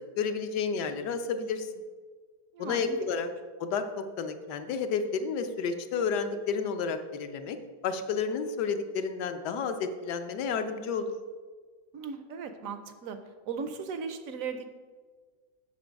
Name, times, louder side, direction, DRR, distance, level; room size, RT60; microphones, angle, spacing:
voice 1, 0.2-1.7 2.6-3.3 3.6-7.6 7.8-11.1, left 5 dB, 75° left, 8 dB, 1.3 m, -31 dB
voice 2, 2.5-3.3 11.9-13.2 13.5-14.7, right 5 dB, 65° right, 9 dB, 0.9 m, -37 dB
7.1 x 6.6 x 5.1 m, 1.5 s
omnidirectional pair, 1.8 m